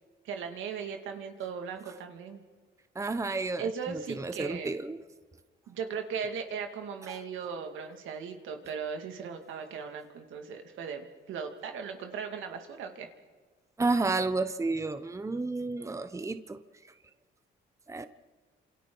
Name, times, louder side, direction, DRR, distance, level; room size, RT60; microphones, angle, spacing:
voice 1, 0.2-2.4 3.6-4.7 5.7-13.1, right 6 dB, 80° right, 2.1 m, -38 dB
voice 2, 3.0-5.0 7.1-7.2 13.8-16.6 17.9-18.1, right 3 dB, 15° right, 0.9 m, -31 dB
28.5 x 27.0 x 3.9 m
cardioid pair, 90°, 20 cm